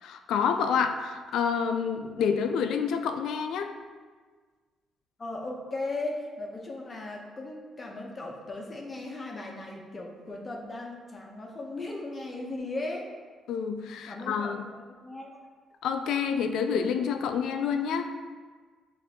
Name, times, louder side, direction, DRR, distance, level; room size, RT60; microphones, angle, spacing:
voice 1, 0.0-3.7 13.5-14.7 15.8-18.1, left 6 dB, 80° left, 7 dB, 0.3 m, -28 dB
voice 2, 5.2-13.1 14.1-14.6 15.0-15.3, left 2 dB, 30° left, 0 dB, 0.8 m, -37 dB
6.7 x 2.6 x 2.8 m, 1.5 s
cardioid pair, 90°, 0 cm